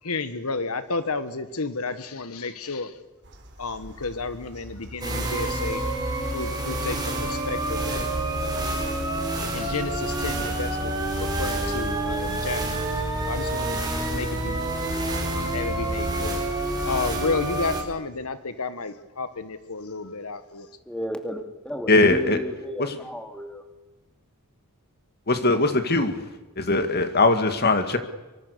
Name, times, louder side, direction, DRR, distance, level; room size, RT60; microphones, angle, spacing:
voice 1, 0.0-2.9 3.6-5.9 6.3-8.1 8.4-8.7 9.5-12.6 13.3-13.8 14.1-14.6 15.3-16.4 16.8-20.7, left 3 dB, 80° left, 12 dB, 1.5 m, -31 dB
sound 1, 3.2-16.4, right 1 dB, 55° right, 3.8 m, -40 dB
sound 2, 5.0-17.8, right 2 dB, 20° right, 5.0 m, -28 dB
voice 2, 20.9-23.6, equal, 5° left, 6 dB, 2.5 m, -33 dB
voice 3, 21.9-22.4 22.8-23.0 25.3-26.3 26.6-28.0, left 2 dB, 45° left, 9 dB, 2.4 m, -20 dB
24.5 x 24.0 x 6.9 m, 1.1 s
head